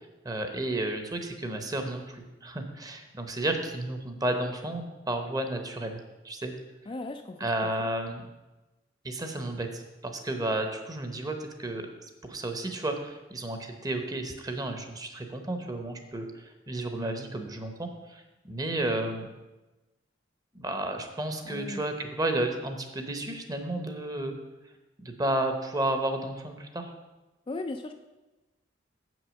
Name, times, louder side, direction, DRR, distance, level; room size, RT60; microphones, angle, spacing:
voice 1, 0.2-6.0 6.2-6.5 7.4-8.2 9.0-11.9 12.2-19.3 20.5-24.4 25.0-26.9, right 1 dB, 20° right, 6 dB, 0.9 m, -32 dB
voice 2, 6.9-7.4 7.8-7.9 21.5-21.8 27.5-27.9, left 2 dB, 25° left, 6 dB, 0.4 m, -36 dB
7.5 x 6.2 x 6.2 m, 1.1 s
head